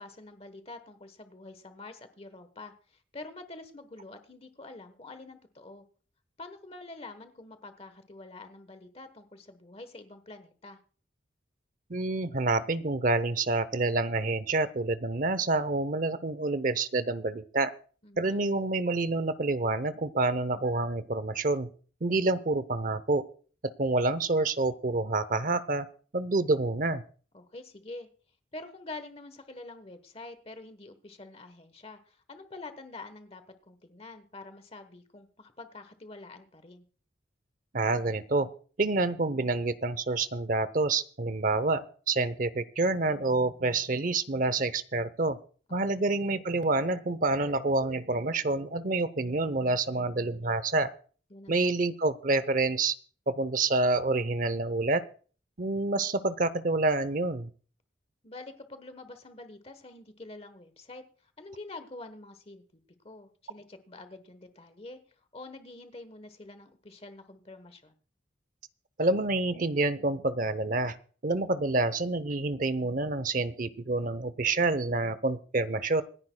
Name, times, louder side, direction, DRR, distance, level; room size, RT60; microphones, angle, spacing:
voice 1, 0.0-5.8 6.4-10.8 18.0-18.5 27.3-28.1 28.5-36.8 45.7-45.8 51.3-51.7 58.2-62.6 63.0-65.0 65.3-67.9, left 2 dB, 30° left, 10 dB, 1.1 m, -46 dB
voice 2, 11.9-17.7 18.2-21.7 22.0-23.2 23.8-25.9 26.1-27.0 37.7-38.5 38.8-45.4 45.7-50.9 51.5-52.9 53.3-55.0 55.6-57.5 69.0-71.0 71.2-76.0, right 3 dB, 45° right, 15 dB, 0.7 m, -28 dB
26.0 x 10.5 x 2.3 m, 0.41 s
head